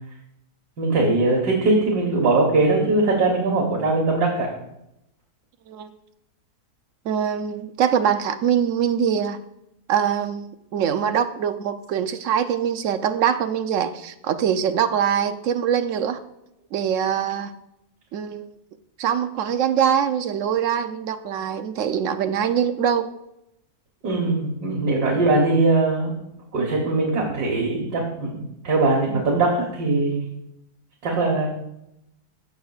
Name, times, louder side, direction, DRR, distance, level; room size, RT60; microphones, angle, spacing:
voice 1, 0.8-4.5 24.0-26.1 26.5-30.2 31.0-31.5, right 2 dB, 85° right, -2 dB, 2.0 m, -21 dB
voice 2, 7.0-9.4 9.9-16.2 16.7-17.5 18.1-18.5 19.0-23.1, right 8 dB, 65° right, 9 dB, 0.9 m, -23 dB
16.0 x 6.3 x 2.4 m, 0.83 s
omnidirectional pair, 1.7 m